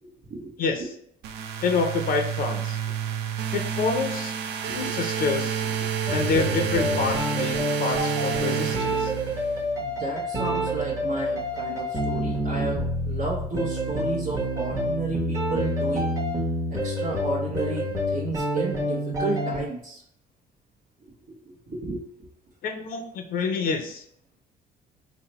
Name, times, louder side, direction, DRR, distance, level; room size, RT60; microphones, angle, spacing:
voice 1, 0.0-0.5 0.8-0.9 4.7-4.9 9.8-16.2 16.7-20.0 21.4-22.3, right 3 dB, 60° right, -6 dB, 1.0 m, -33 dB
sound 1, 1.2-9.6, right 8 dB, 80° right, 0.4 m, -29 dB
voice 2, 1.6-2.8 3.5-4.4 4.7-5.6 6.1-9.1 22.6-24.0, left 4 dB, 60° left, 4 dB, 0.6 m, -27 dB
sound 2, 6.1-19.6, equal, 20° right, 1.1 m, -28 dB
3.9 x 2.1 x 4.2 m, 0.69 s
cardioid pair, 110°, 17 cm